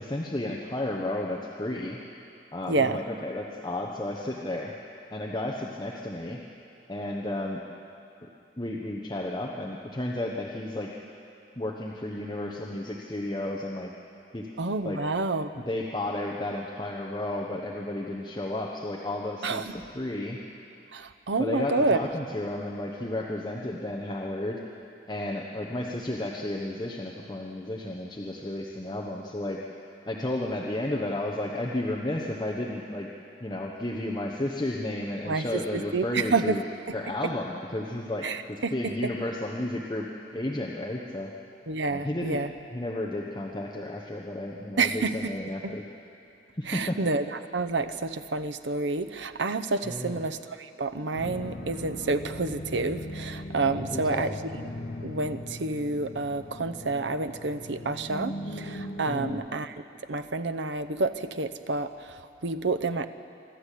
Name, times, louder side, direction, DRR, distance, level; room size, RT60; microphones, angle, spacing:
voice 1, 0.0-2.0 2.5-4.7 5.1-6.4 6.9-7.6 8.2-8.3 8.6-10.9 11.6-13.9 14.3-14.5 14.8-15.0 15.7-20.4 21.4-24.6 25.1-29.6 30.1-33.1 33.4-36.6 36.9-40.1 40.3-41.3 41.9-42.4 42.7-45.8 46.5-47.0 49.9-50.2 53.7-54.3 59.1-59.4, left 1 dB, 25° left, -1 dB, 1.1 m, -32 dB
voice 2, 2.7-3.0 14.6-15.7 19.4-19.6 20.9-22.0 35.3-36.5 38.2-38.7 41.7-42.5 44.8-45.3 45.6-45.7 46.7-54.3 54.6-54.7 55.0-59.7 60.1-63.1, right 3 dB, 85° right, 9 dB, 0.8 m, -29 dB
sound 1, 51.1-59.3, left 1 dB, 70° left, 1.4 m, -39 dB
25.0 x 12.5 x 8.4 m, 2.6 s
head